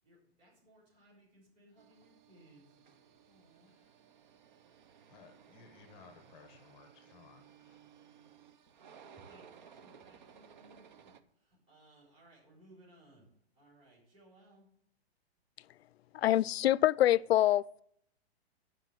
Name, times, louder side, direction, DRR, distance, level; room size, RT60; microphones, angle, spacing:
voice 1, 0.0-2.8 3.2-3.7 9.0-13.3 13.5-14.7, right 1 dB, 15° right, 4.4 m, -62 dB
sound 1, 1.8-11.2, right 7 dB, 45° right, 0.8 m, -59 dB
voice 2, 5.1-7.8, left 5 dB, 15° left, 1.0 m, -59 dB
voice 3, 16.1-17.8, left 13 dB, 70° left, 0.4 m, -26 dB
11.5 x 5.1 x 7.6 m
hypercardioid pair, 170°, 32 cm